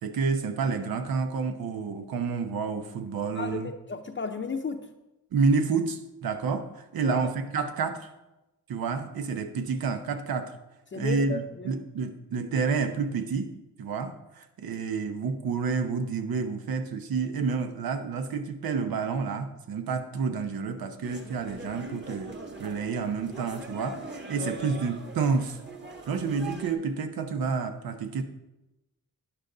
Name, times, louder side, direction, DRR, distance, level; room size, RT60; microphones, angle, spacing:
voice 1, 0.0-3.7 5.3-8.1 8.7-10.6 10.9-13.5 13.8-25.6 26.1-28.2, right 5 dB, 85° right, 7 dB, 1.1 m, -29 dB
voice 2, 3.3-4.9 7.0-7.2 10.9-11.8 24.4-24.7, left 4 dB, 35° left, 4 dB, 0.7 m, -34 dB
sound 1, 21.0-26.7, right 2 dB, 30° right, 1.6 m, -42 dB
12.5 x 10.0 x 3.9 m, 0.99 s
cardioid pair, 100°, 35 cm